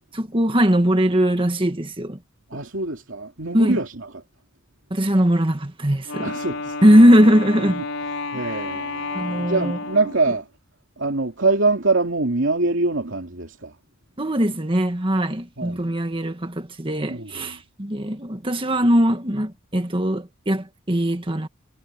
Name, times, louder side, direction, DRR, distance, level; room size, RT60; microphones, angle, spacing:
voice 1, 0.1-2.2 3.5-3.8 4.9-6.3 6.8-7.8 9.1-9.8 14.2-21.5, equal, 25° right, 1.8 m, -20 dB
voice 2, 2.5-4.1 6.2-6.8 7.6-7.7 8.3-10.5 11.0-13.7 15.6-15.8 17.1-17.6, right 3 dB, 65° right, 3.1 m, -24 dB
Wind instrument woodwind instrument, 6.0-10.4, left 3 dB, 90° left, 5.1 m, -31 dB
head